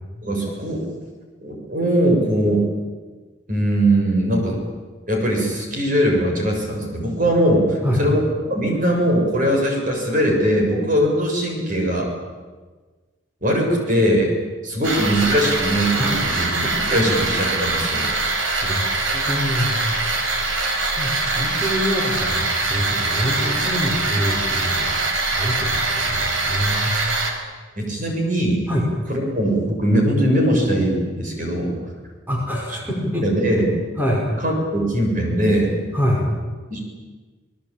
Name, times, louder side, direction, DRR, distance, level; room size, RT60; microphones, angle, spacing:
voice 1, 0.2-0.9 1.4-2.6 3.5-4.6 5.1-12.1 13.4-14.3 14.6-16.6 16.9-18.1 27.8-28.7 29.1-31.8 32.7-32.8 33.2-33.7 34.4-35.7 36.7-36.8, right 1 dB, 45° right, 1 dB, 7.2 m, -20 dB
sound 1, 14.8-27.3, right 3 dB, 85° right, 5.1 m, -23 dB
voice 2, 16.6-17.0 18.6-18.8 19.1-19.9 20.9-27.0 27.3-27.6 28.7-28.9 32.3-33.3 33.6-33.7 34.0-34.3 35.9-36.2, equal, 10° right, -2 dB, 5.6 m, -25 dB
28.5 x 20.0 x 9.0 m, 1.3 s
head